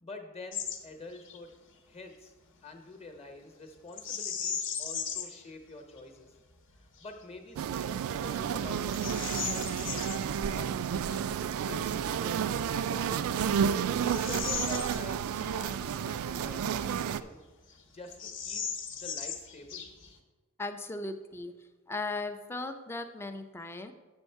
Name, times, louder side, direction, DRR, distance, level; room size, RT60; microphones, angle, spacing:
voice 1, 0.0-1.5 1.9-2.3 2.6-6.3 6.8-13.3 14.0-17.4 17.7-18.6 18.9-19.8, left 2 dB, 30° left, 5 dB, 0.9 m, -47 dB
Bird vocalization bird call bird song, 0.5-0.8 1.1-1.4 3.9-5.4 6.0-6.1 6.7-7.1 7.7-7.8 8.3-10.2 12.3-12.4 13.1-15.5 15.8-15.9 16.6-17.4 17.7-17.8 18.1-20.2, left 7 dB, 60° left, 0.8 m, -37 dB
sound 1, 7.6-17.2, right 8 dB, 70° right, 0.3 m, -31 dB
voice 2, 20.6-21.5 21.9-23.9, left 2 dB, 10° left, 7 dB, 0.4 m, -37 dB
8.0 x 6.3 x 4.5 m, 1.2 s
head